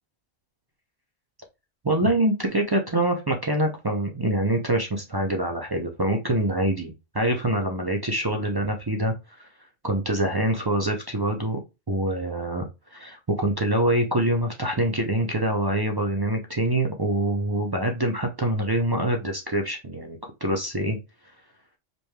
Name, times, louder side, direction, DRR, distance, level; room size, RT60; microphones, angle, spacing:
voice 1, 1.8-9.5 9.8-11.6 11.9-21.0, right 1 dB, 40° right, 1 dB, 0.3 m, -25 dB
5.2 x 3.2 x 2.2 m, 0.26 s
omnidirectional pair, 1.3 m